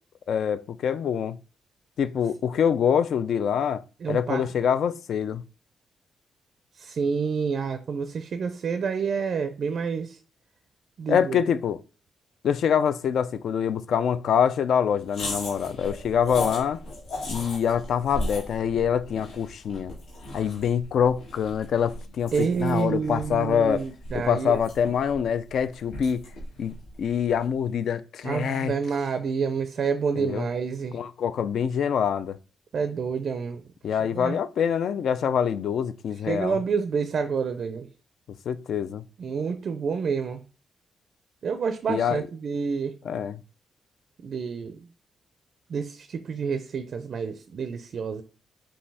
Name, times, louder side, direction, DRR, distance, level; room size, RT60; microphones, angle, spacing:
voice 1, 0.3-1.4 2.0-3.8 4.1-5.4 11.1-11.8 12.4-16.8 17.3-19.9 20.3-23.8 24.1-26.2 26.6-28.7 30.1-30.5 30.9-32.4 33.8-36.6 38.5-39.0 41.9-42.2 43.0-43.4, left 8 dB, 65° left, 0.3 m, -25 dB
voice 2, 4.0-4.4 6.8-10.2 11.0-11.4 22.3-24.6 28.2-31.0 32.7-33.6 34.1-34.4 36.3-37.9 39.2-40.4 41.4-42.9 44.2-44.9 45.7-48.2, right 5 dB, 50° right, 0.4 m, -28 dB
sound 1, 15.1-27.6, left 1 dB, 85° left, 2.0 m, -38 dB
5.3 x 2.7 x 3.3 m
wide cardioid pair, 155°, 0 cm